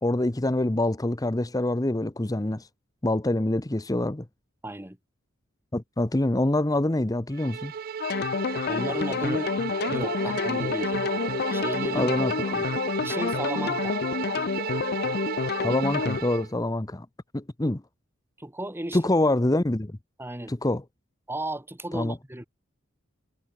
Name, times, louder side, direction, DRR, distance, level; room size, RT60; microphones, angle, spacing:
voice 1, 0.0-2.7 3.0-4.3 5.7-7.7 11.9-12.7 15.6-17.1 17.3-17.8 18.9-20.0 20.5-20.8 21.9-22.2, left 1 dB, 20° left, 0.8 m, -25 dB
voice 2, 4.6-5.0 8.7-9.5 9.9-11.0 11.5-12.2 13.0-14.0 18.4-19.0 20.2-20.6 21.3-22.5, right 1 dB, 10° right, 1.4 m, -34 dB
Bowed string instrument, 7.4-16.5, right 8 dB, 45° right, 0.3 m, -34 dB
sound 1, 8.0-16.2, left 5 dB, 50° left, 0.5 m, -28 dB
head